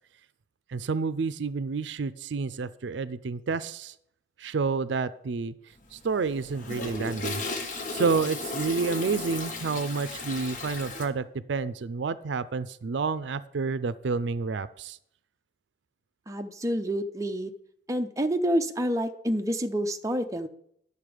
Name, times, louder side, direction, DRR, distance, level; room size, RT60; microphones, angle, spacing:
voice 1, 0.7-3.9 4.4-5.5 5.9-7.4 7.9-15.0, right 4 dB, 75° right, 15 dB, 0.4 m, -29 dB
Toilet flush, 5.8-11.0, left 3 dB, 45° left, 1.3 m, -35 dB
voice 2, 16.3-17.5 17.9-20.5, equal, 15° right, 6 dB, 0.5 m, -28 dB
10.5 x 6.8 x 5.0 m, 0.71 s
head